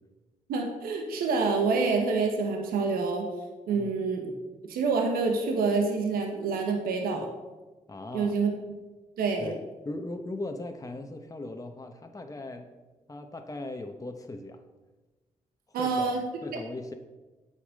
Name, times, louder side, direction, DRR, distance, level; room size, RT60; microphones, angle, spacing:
voice 1, 0.5-3.3 3.7-4.3 4.7-7.3 8.1-8.5 9.2-9.5 15.7-16.2, right 4 dB, 85° right, 3 dB, 1.1 m, -27 dB
voice 2, 7.9-8.4 9.4-12.7 13.1-14.6 15.8-16.1 16.4-16.9, left 2 dB, 20° left, 5 dB, 1.0 m, -38 dB
8.4 x 5.6 x 6.4 m, 1.2 s
supercardioid pair, 45°, 15 cm